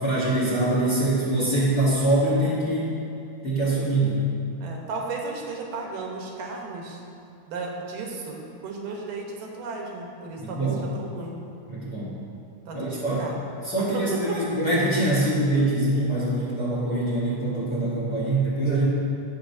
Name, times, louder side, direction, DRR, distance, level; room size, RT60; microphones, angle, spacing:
voice 1, 0.0-3.0 3.4-4.2 10.4-10.8 11.7-12.1 12.7-13.2 13.6-18.8, right 1 dB, 40° left, -7 dB, 1.5 m, -24 dB
voice 2, 4.6-7.0 7.5-11.4 12.7-13.4 13.6-14.4, right 3 dB, 85° right, 0 dB, 2.7 m, -34 dB
16.0 x 6.5 x 2.7 m, 2.5 s
omnidirectional pair, 3.7 m